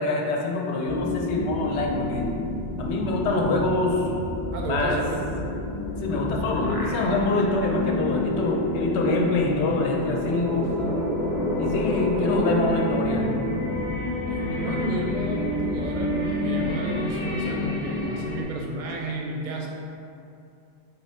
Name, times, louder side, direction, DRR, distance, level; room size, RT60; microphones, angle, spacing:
voice 1, 0.0-2.3 2.8-4.1 4.6-5.0 6.0-10.7 11.6-13.3 14.6-14.8, left 2 dB, 80° left, 0 dB, 0.8 m, -25 dB
sound 1, 0.9-18.4, left 2 dB, 20° left, 0.9 m, -29 dB
voice 2, 4.5-5.3 14.3-19.7, right 2 dB, 55° right, -1 dB, 0.6 m, -32 dB
sound 2, 5.9-7.6 8.0-8.1 9.4-14.2, left 1 dB, 45° left, 0.5 m, -32 dB
4.0 x 2.1 x 4.2 m, 2.6 s
omnidirectional pair, 1.1 m